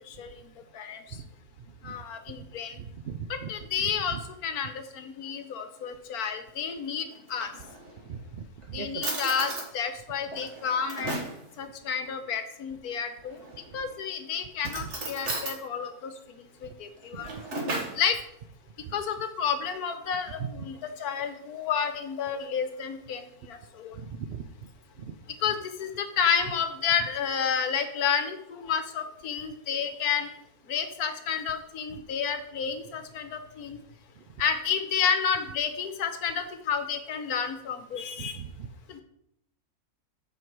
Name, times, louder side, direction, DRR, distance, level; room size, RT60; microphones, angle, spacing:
voice 1, 0.1-0.4 0.7-1.2 1.8-2.8 3.3-7.5 8.7-11.2 11.6-13.4 13.7-17.3 18.0-18.2 18.9-24.0 25.4-30.3 30.7-33.8 34.4-38.4 38.9-39.0, left 7 dB, 70° left, 8 dB, 1.3 m, -30 dB
voice 2, 2.8-3.5 4.1-4.2 8.1-9.0 14.8-14.9 17.1-17.2 18.9-19.0 23.9-24.4 25.0-25.2 38.2-38.7, right 7 dB, 75° right, 6 dB, 0.5 m, -39 dB
Drawer open or close, 7.1-8.1 8.6-8.7 9.0-9.7 10.3-11.4 13.3-13.8 14.6-15.6 17.0-18.0, right 2 dB, 45° right, 1.9 m, -35 dB
7.7 x 5.6 x 4.7 m, 0.75 s
omnidirectional pair, 1.7 m